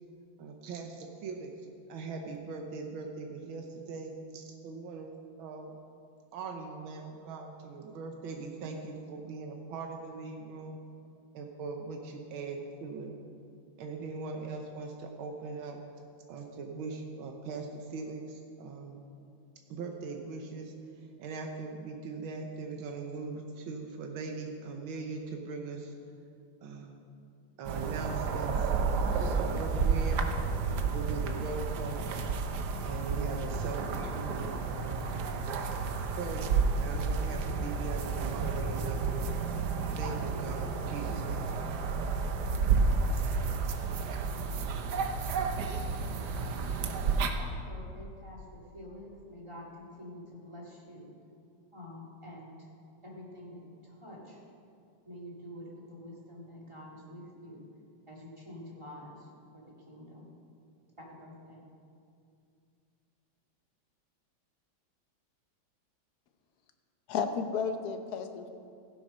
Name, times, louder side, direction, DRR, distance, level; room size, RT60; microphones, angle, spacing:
voice 1, 0.4-1.5 1.9-5.1 5.4-5.7 6.3-10.8 11.3-13.2 13.8-15.8 16.3-19.1 19.7-25.9 26.6-27.0 27.6-28.7 29.3-30.4 30.6-32.1 32.8-35.3 36.1-39.4 40.0-41.6, right 4 dB, 85° right, 3 dB, 1.7 m, -40 dB
sound 1, 27.6-47.3, right 4 dB, 65° right, 1.3 m, -31 dB
voice 2, 47.4-51.1 51.7-52.7 53.0-54.4 55.0-57.7 58.1-60.3 61.0-61.6, left 1 dB, 15° right, -4 dB, 2.3 m, -48 dB
voice 3, 67.1-68.5, left 6 dB, 60° left, 7 dB, 1.2 m, -32 dB
15.0 x 8.2 x 5.5 m, 2.4 s
omnidirectional pair, 2.2 m